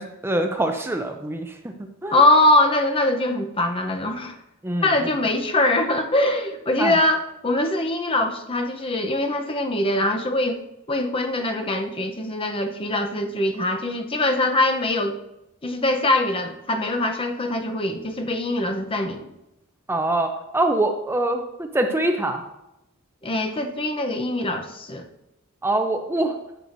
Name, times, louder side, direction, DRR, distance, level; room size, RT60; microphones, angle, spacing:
voice 1, 0.0-1.7 2.0-2.2 4.6-4.9 6.8-6.9 19.9-21.4 21.7-22.4 25.6-26.3, right 1 dB, 10° right, 5 dB, 0.5 m, -24 dB
voice 2, 2.1-4.4 4.8-10.6 10.9-15.2 15.6-19.3 23.2-25.0, left 1 dB, 25° left, 5 dB, 0.7 m, -22 dB
11.5 x 7.6 x 2.6 m, 0.89 s
head